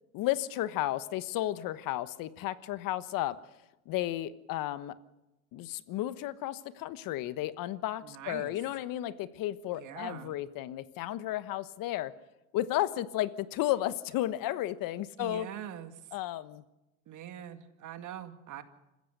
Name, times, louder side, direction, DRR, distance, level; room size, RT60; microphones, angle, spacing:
voice 1, 0.1-3.4 3.9-4.9 5.5-12.1 12.5-15.5 16.1-16.6, left 14 dB, 55° left, 14 dB, 1.2 m, -33 dB
voice 2, 8.0-8.6 9.7-10.4 15.2-16.0 17.1-18.6, right 10 dB, 45° right, 8 dB, 2.1 m, -43 dB
26.5 x 15.0 x 6.6 m, 0.96 s
supercardioid pair, 95°, 40 cm